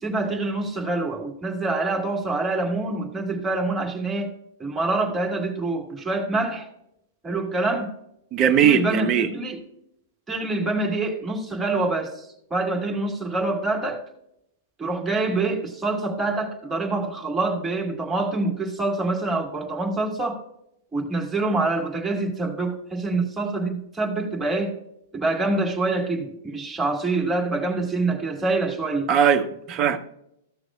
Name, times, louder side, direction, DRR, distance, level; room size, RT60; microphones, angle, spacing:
voice 1, 0.0-4.3 4.6-6.7 7.2-7.9 8.6-9.6 10.3-14.0 14.8-20.4 20.9-24.7 25.1-29.1, right 2 dB, 15° right, 1 dB, 2.1 m, -26 dB
voice 2, 8.3-9.3 29.1-30.0, right 8 dB, 35° right, 7 dB, 0.9 m, -19 dB
15.0 x 6.4 x 2.4 m, 0.77 s
figure-of-eight pair, 100°, 0 cm